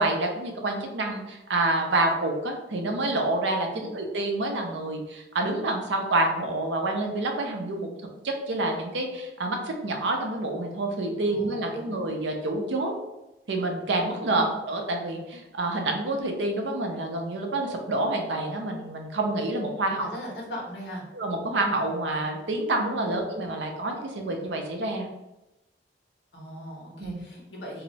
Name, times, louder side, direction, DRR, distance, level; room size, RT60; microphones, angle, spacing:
voice 1, 0.0-7.9 8.2-12.9 13.5-20.1 21.1-25.1 27.0-27.2, right 2 dB, 90° right, 3 dB, 0.6 m, -28 dB
voice 2, 11.3-12.0 14.3-14.6 19.9-21.0 23.0-23.3 26.3-27.8, equal, 70° left, -3 dB, 1.1 m, -39 dB
2.7 x 2.1 x 3.9 m, 0.97 s
head